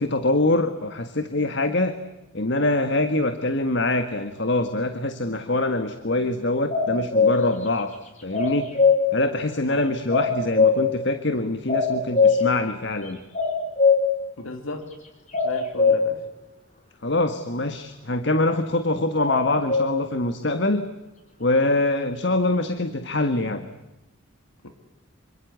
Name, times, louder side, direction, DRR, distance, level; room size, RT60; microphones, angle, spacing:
voice 1, 0.0-2.0 2.3-7.9 8.2-8.8 9.1-13.2 17.0-20.8 21.4-23.7, left 2 dB, 55° left, 9 dB, 1.7 m, -24 dB
sound 1, 6.7-7.4 8.3-9.0 10.1-10.9 11.7-12.4 13.3-14.0 15.3-16.0 19.3-19.9, left 5 dB, 35° left, 5.0 m, -19 dB
voice 2, 9.5-9.8 14.4-14.9 15.4-16.2 24.6-24.7, left 2 dB, 85° left, 6 dB, 3.1 m, -35 dB
27.5 x 25.0 x 8.2 m, 0.96 s
head